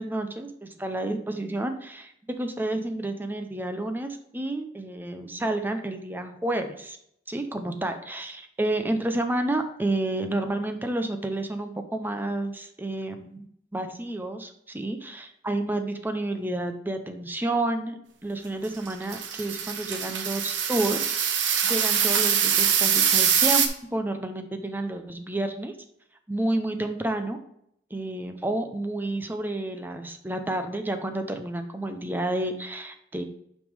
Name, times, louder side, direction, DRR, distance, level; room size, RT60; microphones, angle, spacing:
voice 1, 0.0-7.0 7.3-13.5 13.7-21.0 21.6-23.7 23.9-25.7 26.3-27.4 27.9-33.2, right 1 dB, 10° right, 7 dB, 0.6 m, -30 dB
sound 1, 18.9-23.7, right 8 dB, 90° right, 0.9 m, -23 dB
8.2 x 5.3 x 3.3 m, 0.72 s
head